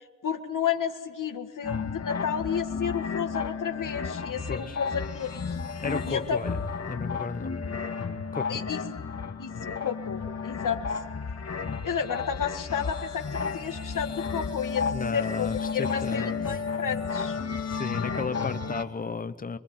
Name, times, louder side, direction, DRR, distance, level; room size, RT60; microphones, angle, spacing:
voice 1, 0.2-5.6 6.1-6.4 8.5-8.8 9.4-10.8 11.8-17.4, left 7 dB, 90° left, 4 dB, 1.9 m, -32 dB
sound 1, 1.6-18.8, left 5 dB, 55° left, 2.0 m, -32 dB
voice 2, 5.8-6.6 6.9-7.5 8.3-8.6 14.9-16.4 17.6-19.6, left 4 dB, 30° left, 12 dB, 0.9 m, -34 dB
26.0 x 23.0 x 9.3 m, 1.4 s
wide cardioid pair, 170°, 31 cm